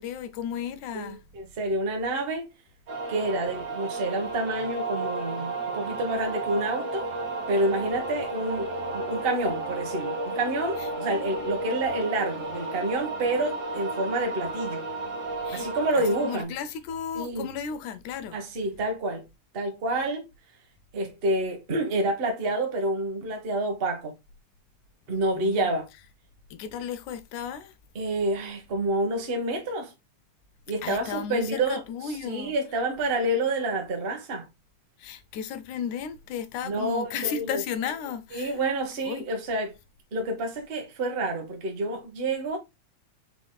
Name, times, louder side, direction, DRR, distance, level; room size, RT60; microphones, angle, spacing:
voice 1, 0.0-1.2 10.8-10.9 15.4-15.7 16.0-18.4 25.4-25.7 26.5-27.7 30.8-32.6 35.0-38.6 39.0-39.2, left 8 dB, 75° left, 2.0 m, -34 dB
voice 2, 0.9-2.5 3.1-7.1 7.5-14.9 15.5-16.5 17.1-17.5 18.3-19.2 19.5-20.3 20.9-24.1 25.1-25.9 27.9-29.9 30.7-31.8 32.2-34.5 36.6-37.6 38.3-39.8 40.1-42.6, right 2 dB, 60° right, 0.6 m, -28 dB
sound 1, 2.9-16.4, right 2 dB, 40° right, 1.8 m, -33 dB
5.7 x 4.1 x 2.3 m
omnidirectional pair, 3.6 m